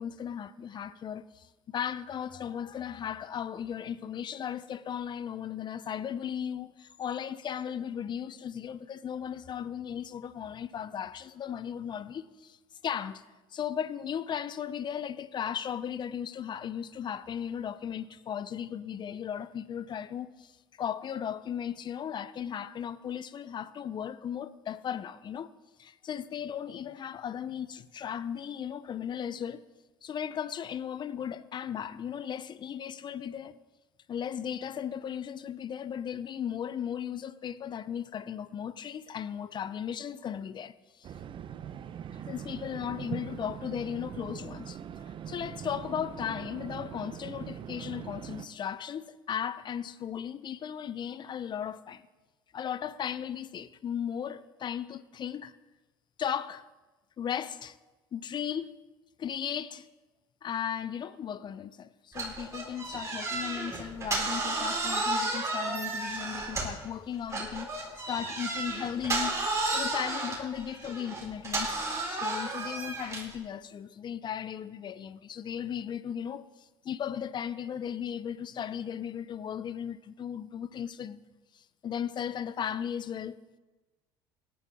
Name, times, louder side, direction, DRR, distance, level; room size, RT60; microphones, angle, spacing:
voice 1, 0.0-12.6 12.8-13.2 13.5-20.5 20.8-25.5 25.8-29.6 30.0-33.6 34.1-41.1 42.3-44.8 45.3-52.0 52.5-55.6 56.2-56.6 57.2-57.8 58.1-58.8 59.2-59.9 60.4-76.5 76.8-81.2 81.5-83.4, left 8 dB, 40° left, 0.6 m, -36 dB
sound 1, 41.0-48.5, right 9 dB, 45° right, 0.8 m, -41 dB
sound 2, 62.1-66.9 67.3-73.4, right 2 dB, 25° right, 4.3 m, -32 dB
17.5 x 11.0 x 3.6 m
hypercardioid pair, 75°, 12 cm